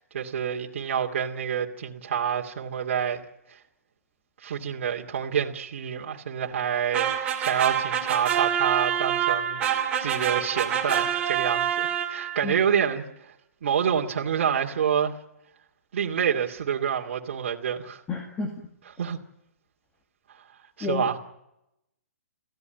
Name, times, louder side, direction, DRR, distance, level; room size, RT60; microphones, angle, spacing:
voice 1, 0.0-3.2 3.5-3.6 4.4-9.6 10.0-13.0 13.6-15.1 15.9-18.0 19.0-19.2 20.8-21.2, right 8 dB, 50° right, 2.5 m, -27 dB
sound 1, 6.9-12.5, right 9 dB, 15° right, 2.8 m, -26 dB
voice 2, 18.1-18.5 20.8-21.2, left 3 dB, 10° left, 1.8 m, -30 dB
28.0 x 16.0 x 9.1 m
hypercardioid pair, 170°, 8 cm